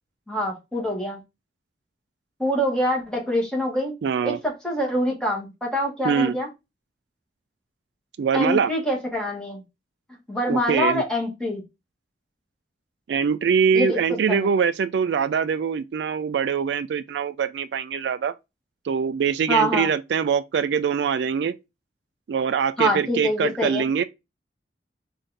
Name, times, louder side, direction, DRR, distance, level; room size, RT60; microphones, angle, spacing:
voice 1, 0.3-1.2 2.4-3.9 4.2-6.5 8.3-9.6 10.3-11.6 13.7-14.0 14.3-14.5 19.5-19.9 22.8-23.9, equal, 5° left, 1.5 m, -25 dB
voice 2, 4.0-4.4 6.0-6.4 8.2-8.7 10.5-11.0 13.1-18.3 18.9-21.5 22.3-24.0, right 6 dB, 70° right, 0.3 m, -23 dB
5.5 x 2.6 x 3.3 m
head